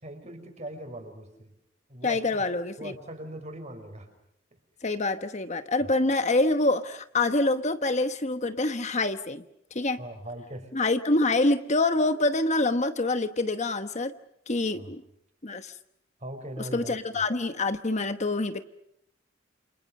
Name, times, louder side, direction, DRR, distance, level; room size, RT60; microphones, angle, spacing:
voice 1, 0.0-1.5 1.9-2.4 2.8-4.1 5.8-5.9 10.0-10.7 14.7-14.9 16.2-17.2, right 1 dB, 35° right, 6 dB, 6.0 m, -40 dB
voice 2, 2.0-2.9 4.8-9.4 9.7-10.0 10.7-14.1 14.5-15.0 15.4-15.7 16.7-18.6, left 2 dB, 35° left, 9 dB, 1.1 m, -26 dB
29.0 x 29.0 x 6.6 m, 0.74 s
head